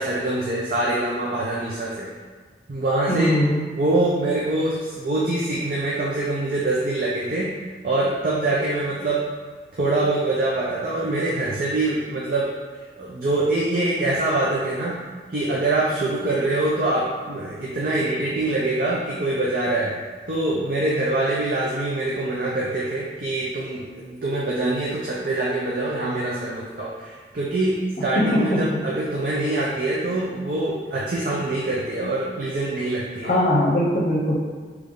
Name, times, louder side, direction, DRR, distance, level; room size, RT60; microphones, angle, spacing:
voice 1, 0.0-2.1 2.7-3.3 3.7-7.5 7.8-9.2 9.8-12.5 12.9-15.0 15.3-19.9 20.3-33.3, right 2 dB, 50° right, -5 dB, 0.5 m, -24 dB
voice 2, 3.1-3.6 28.2-28.6 33.2-34.3, left 1 dB, 45° left, -3 dB, 0.8 m, -20 dB
3.4 x 3.1 x 3.8 m, 1.5 s
head